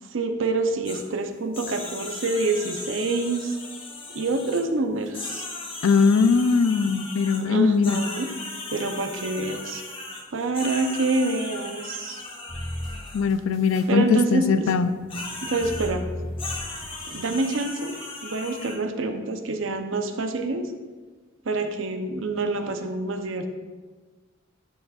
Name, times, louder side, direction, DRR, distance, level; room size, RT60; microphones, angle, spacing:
voice 1, 0.0-3.6 4.1-5.5 7.4-8.3 8.7-9.8 10.3-12.2 13.9-14.7 15.4-16.0 17.0-20.7 21.4-23.5, right 3 dB, 70° right, 6 dB, 0.6 m, -27 dB
sound 1, 0.8-1.0 1.5-4.6 5.0-7.4 7.8-13.2 15.1-15.9 16.4-18.7, left 3 dB, 25° left, 1.1 m, -37 dB
voice 2, 5.8-8.0 13.1-14.9, left 5 dB, 75° left, 12 dB, 0.4 m, -20 dB
sound 2, 12.5-13.9 14.2-17.5, left 1 dB, 5° right, 2.1 m, -36 dB
9.9 x 6.2 x 2.4 m, 1.4 s
head